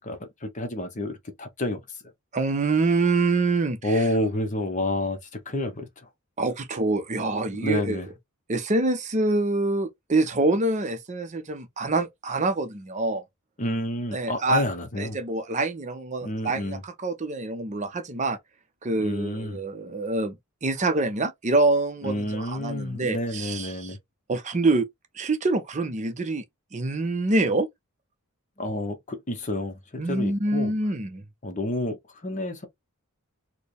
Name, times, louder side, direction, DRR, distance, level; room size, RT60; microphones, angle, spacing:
voice 1, 0.0-1.8 3.8-6.1 7.6-8.1 13.6-15.2 16.2-16.8 19.0-19.6 22.0-24.0 28.6-30.7 31.4-32.7, left 1 dB, 35° left, 0.8 m, -29 dB
voice 2, 2.3-4.0 6.4-8.1 8.5-13.2 14.1-14.7 15.0-18.4 18.8-23.9 24.3-24.9 25.1-26.4 26.7-27.7 30.0-31.2, right 2 dB, 30° right, 0.6 m, -26 dB
4.3 x 2.1 x 3.2 m
head